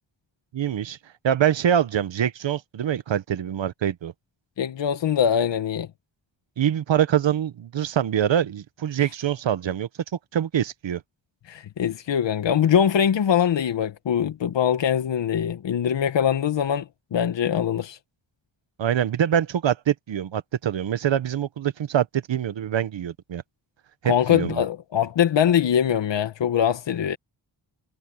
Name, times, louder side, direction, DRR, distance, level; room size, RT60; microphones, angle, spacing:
voice 1, 0.5-1.0 1.2-4.1 6.6-9.9 10.3-11.0 18.8-23.4 24.0-24.6, right 9 dB, 75° right, 1.1 m, -24 dB
voice 2, 4.6-5.9 11.5-18.0 24.0-27.2, left 9 dB, 70° left, 1.2 m, -22 dB
wide cardioid pair, 125°, 45 cm